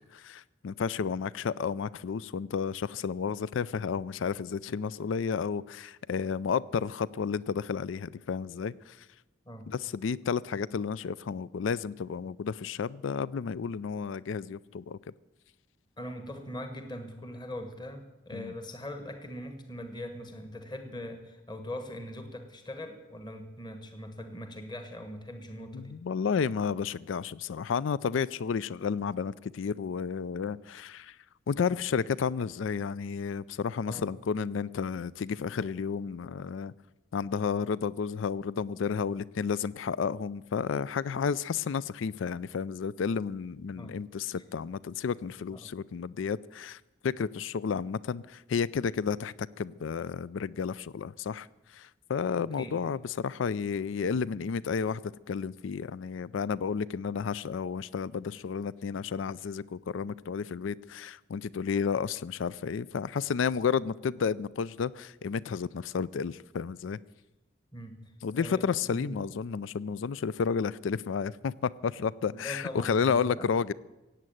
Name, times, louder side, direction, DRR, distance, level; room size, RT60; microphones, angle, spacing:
voice 1, 0.1-9.1 9.7-15.0 18.3-18.5 25.7-31.2 31.5-36.7 37.1-67.0 68.2-73.7, left 6 dB, 85° left, 21 dB, 0.4 m, -32 dB
voice 2, 16.0-26.0 33.9-34.1 43.7-44.0 45.5-45.8 52.6-52.8 67.7-69.2 72.3-73.5, left 1 dB, 25° left, 7 dB, 1.4 m, -41 dB
16.0 x 8.7 x 9.1 m, 1.1 s
head